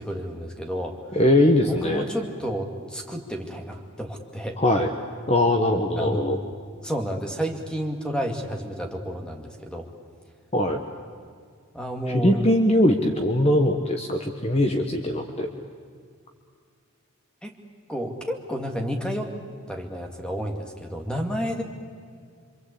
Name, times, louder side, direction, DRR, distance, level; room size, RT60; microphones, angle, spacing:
voice 1, 0.0-1.0 1.6-4.6 6.0-6.4 6.8-9.9 11.7-12.5 17.4-17.6 17.9-19.3 19.7-21.6, equal, 5° left, 3 dB, 2.4 m, -31 dB
voice 2, 1.1-2.1 4.6-4.9 5.3-6.4 10.5-10.8 12.1-15.5, left 1 dB, 30° left, 4 dB, 1.3 m, -21 dB
27.0 x 25.0 x 8.5 m, 2.1 s
head